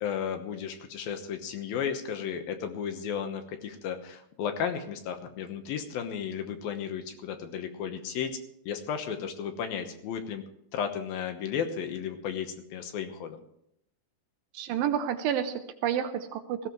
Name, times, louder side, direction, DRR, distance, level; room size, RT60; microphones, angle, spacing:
voice 1, 0.0-10.4 10.7-13.4, left 7 dB, 75° left, 7 dB, 2.9 m, -34 dB
voice 2, 14.5-16.7, right 9 dB, 75° right, 9 dB, 2.4 m, -30 dB
19.0 x 15.0 x 3.1 m, 0.75 s
omnidirectional pair, 4.4 m